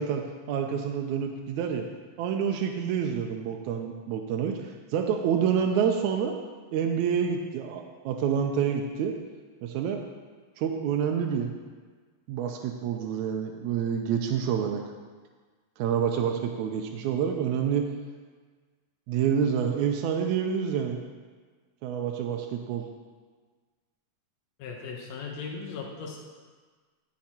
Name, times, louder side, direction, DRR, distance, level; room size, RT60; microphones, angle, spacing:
voice 1, 0.0-1.9 2.2-6.4 6.7-9.1 9.6-10.0 10.6-11.5 12.3-14.8 15.8-17.9 19.1-21.0 21.8-22.9, right 7 dB, 90° right, 3 dB, 2.0 m, -28 dB
voice 2, 24.6-26.3, left 5 dB, 70° left, -1 dB, 2.1 m, -38 dB
14.5 x 6.3 x 2.9 m, 1.5 s
omnidirectional pair, 3.3 m